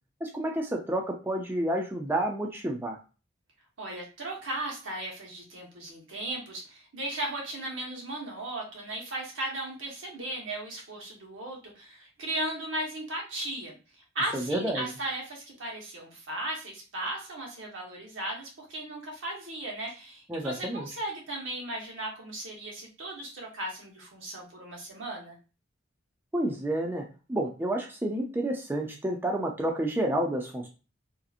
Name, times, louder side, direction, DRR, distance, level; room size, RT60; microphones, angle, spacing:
voice 1, 0.2-3.0 14.3-14.9 20.3-20.9 26.3-30.7, right 1 dB, 10° right, 1 dB, 0.4 m, -30 dB
voice 2, 3.8-13.7 14.1-25.3, right 1 dB, 90° right, -1 dB, 1.1 m, -36 dB
2.8 x 2.5 x 2.4 m, 0.33 s
head